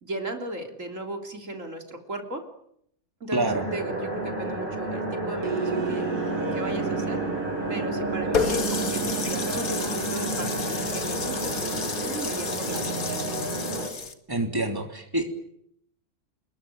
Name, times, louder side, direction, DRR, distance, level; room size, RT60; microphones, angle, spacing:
voice 1, 0.0-2.4 3.2-6.1 6.5-7.2 7.7-13.2, right 1 dB, 55° right, 4 dB, 3.6 m, -36 dB
voice 2, 3.3-3.6 14.3-15.2, right 2 dB, 15° right, 4 dB, 3.5 m, -26 dB
sound 1, 3.4-13.9, right 1 dB, 30° right, 6.0 m, -31 dB
sound 2, 5.4-12.0, right 5 dB, 75° right, 1.8 m, -33 dB
Water tap faucet, 8.3-14.1, left 5 dB, 65° left, 2.4 m, -31 dB
29.0 x 22.0 x 9.3 m, 0.72 s
omnidirectional pair, 1.6 m